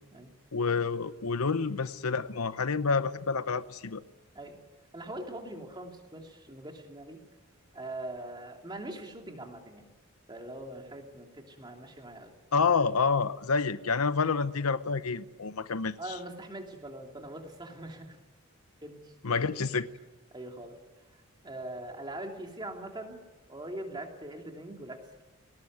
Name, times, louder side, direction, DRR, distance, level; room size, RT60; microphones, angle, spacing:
voice 1, 0.5-4.0 12.5-16.0 19.2-19.9, left 5 dB, 80° left, 14 dB, 0.8 m, -28 dB
voice 2, 4.9-7.2 7.7-9.9 10.3-12.3 16.0-18.2 18.8-19.1 19.5-19.6 20.3-20.8 21.4-23.2 23.5-25.2, right 1 dB, 20° right, 2 dB, 3.0 m, -42 dB
19.5 x 18.5 x 9.5 m, 1.2 s
head